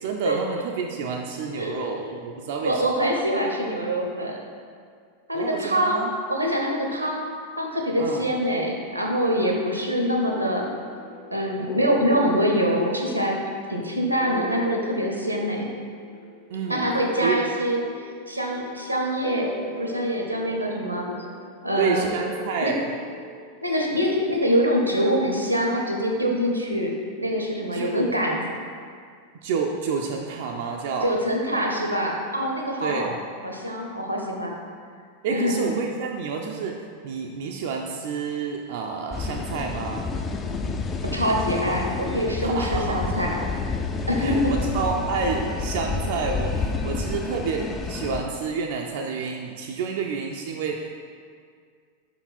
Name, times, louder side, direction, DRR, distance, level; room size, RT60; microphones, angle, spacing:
voice 1, 0.0-2.9 5.3-6.1 8.0-8.3 16.5-16.9 17.2-17.4 21.8-22.9 27.7-28.2 29.4-31.1 32.8-33.2 35.2-40.1 42.4-43.4 44.2-50.9, right 5 dB, 50° right, 1 dB, 0.4 m, -29 dB
voice 2, 1.6-2.0 2.6-4.4 5.3-6.0 6.3-7.3 7.6-10.6 11.3-13.4 13.7-15.7 16.7-17.8 18.3-19.5 19.8-21.1 21.6-22.1 22.6-22.7 23.6-26.9 27.2-28.4 31.0-33.1 33.4-34.5 35.3-35.7 41.1-43.3 44.1-44.5, equal, 85° right, 0 dB, 0.8 m, -24 dB
sound 1, 10.3-24.1, equal, 40° left, 1.0 m, -38 dB
sound 2, 39.1-48.2, left 4 dB, 25° left, 0.4 m, -29 dB
5.3 x 4.5 x 4.2 m, 2.1 s
figure-of-eight pair, 90°, 0 cm